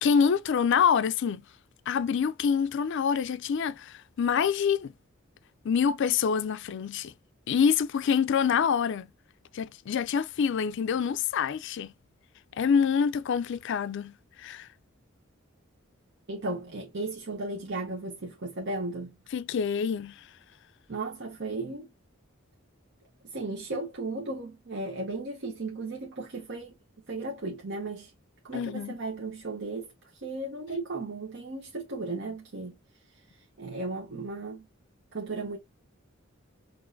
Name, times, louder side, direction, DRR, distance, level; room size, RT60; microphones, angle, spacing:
voice 1, 0.0-1.4 1.9-4.9 5.6-7.1 7.5-9.1 9.5-11.9 12.6-14.7 19.3-20.2 28.5-29.0, left 7 dB, 60° left, 0.4 m, -26 dB
voice 2, 16.3-19.2 20.9-21.9 23.3-26.7 27.1-28.1 28.4-32.8 33.1-34.6 35.1-35.6, right 2 dB, 60° right, 0.8 m, -35 dB
6.1 x 2.6 x 2.5 m
head